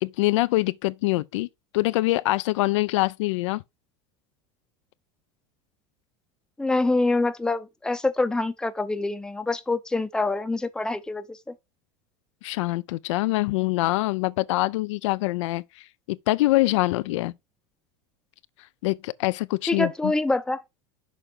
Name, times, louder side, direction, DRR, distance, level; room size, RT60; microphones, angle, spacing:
voice 1, 0.0-1.5 1.7-3.6 12.4-17.3 18.8-20.1, left 19 dB, 85° left, 0.4 m, -24 dB
voice 2, 6.6-11.5 19.7-20.6, left 2 dB, 5° left, 0.6 m, -25 dB
6.2 x 3.3 x 5.3 m
supercardioid pair, 135°, 15 cm